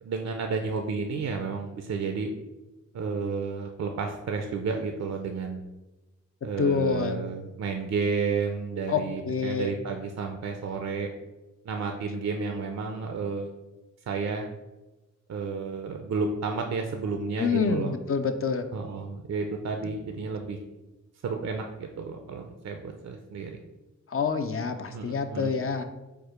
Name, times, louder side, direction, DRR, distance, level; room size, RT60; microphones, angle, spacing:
voice 1, 0.0-2.3 2.9-5.6 6.4-11.1 11.6-13.5 14.1-14.5 15.3-17.9 18.7-20.6 21.2-23.6 24.9-25.5, right 4 dB, 60° right, 4 dB, 0.5 m, -31 dB
voice 2, 6.6-7.2 8.9-9.7 17.4-18.6 19.8-19.9 24.1-25.8, left 5 dB, 50° left, 8 dB, 0.5 m, -27 dB
4.6 x 2.4 x 4.9 m, 1.1 s
cardioid pair, 75°, 30 cm